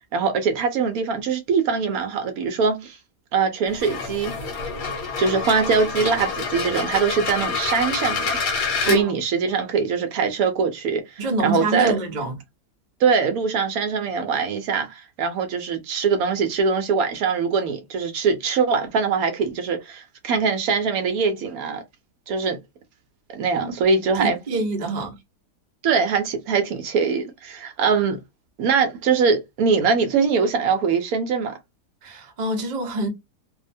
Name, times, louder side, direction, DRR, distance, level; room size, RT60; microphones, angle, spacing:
voice 1, 0.1-3.0 3.3-4.4 5.2-8.4 8.8-12.0 13.0-21.8 22.3-22.6 23.3-24.6 25.8-28.2 28.6-31.6, right 5 dB, 70° right, 1.0 m, -22 dB
sound 1, 3.7-9.0, left 5 dB, 70° left, 1.2 m, -27 dB
voice 2, 11.2-12.3 23.6-23.8 24.1-25.2 32.0-33.1, right 2 dB, 50° right, 0.5 m, -26 dB
2.7 x 2.1 x 2.5 m
omnidirectional pair, 1.7 m